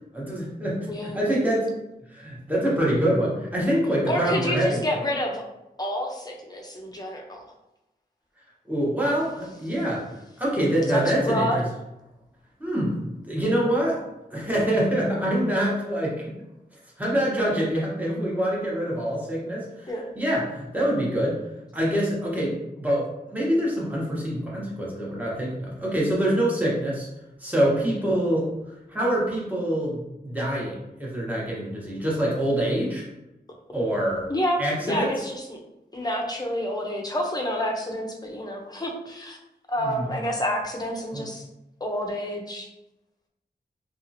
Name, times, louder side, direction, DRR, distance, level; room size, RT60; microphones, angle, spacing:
voice 1, 0.1-1.7 2.1-4.8 8.7-10.0 10.4-11.5 12.6-13.0 13.2-14.0 14.3-16.2 17.0-21.4 21.7-27.1 27.4-28.5 28.9-30.7 31.0-33.0 33.7-34.3 34.6-35.1 39.8-40.1 41.1-41.2, right 1 dB, 10° right, -5 dB, 1.1 m, -25 dB
voice 2, 0.9-1.2 4.1-5.4 5.8-7.5 10.9-11.6 19.9-20.0 33.7-33.8 34.3-35.6 35.9-39.4 39.7-41.4 41.8-42.7, equal, 25° left, 0 dB, 0.6 m, -29 dB
2.7 x 2.4 x 2.7 m, 0.91 s
cardioid pair, 55°, 17 cm